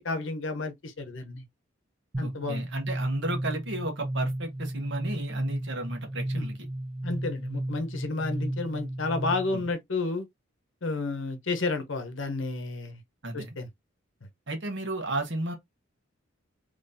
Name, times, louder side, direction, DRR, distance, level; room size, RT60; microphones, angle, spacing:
voice 1, 0.0-1.4 2.2-2.6 6.3-6.5 7.0-10.3 10.8-13.0 13.3-13.7, left 3 dB, 65° left, 0.9 m, -31 dB
sound 1, 2.1-9.7, right 1 dB, 25° right, 0.8 m, -34 dB
voice 2, 2.2-6.7 13.2-13.5 14.5-15.5, right 2 dB, 60° right, 1.2 m, -33 dB
3.9 x 3.0 x 2.7 m
head